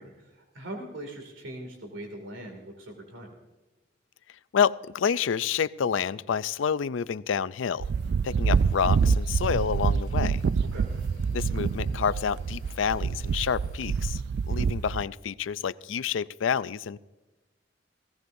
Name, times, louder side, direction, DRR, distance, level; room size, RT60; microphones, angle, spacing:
voice 1, 0.0-3.3 8.3-8.5 10.6-10.9, right 1 dB, 90° right, 3 dB, 2.4 m, -41 dB
voice 2, 4.5-7.9 8.2-10.4 11.3-14.2 14.5-17.0, left 7 dB, 80° left, 16 dB, 0.4 m, -28 dB
sound 1, 7.8-15.0, right 5 dB, 60° right, 0.3 m, -26 dB
sound 2, 8.7-14.2, left 1 dB, 50° left, 2.0 m, -52 dB
18.5 x 16.5 x 2.6 m, 1.2 s
head